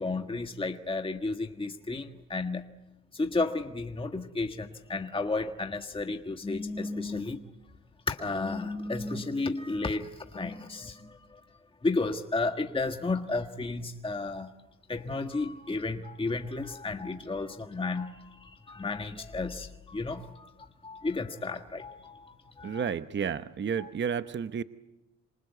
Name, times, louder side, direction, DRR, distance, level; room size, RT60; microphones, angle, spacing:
voice 1, 0.0-2.6 3.1-7.4 8.1-11.4 11.8-14.5 14.9-20.5 20.8-22.9, left 3 dB, 15° left, 5 dB, 1.6 m, -33 dB
voice 2, 22.6-24.6, right 7 dB, 40° right, 12 dB, 0.9 m, -31 dB
27.5 x 26.0 x 8.3 m, 1.0 s
cardioid pair, 90°, 30 cm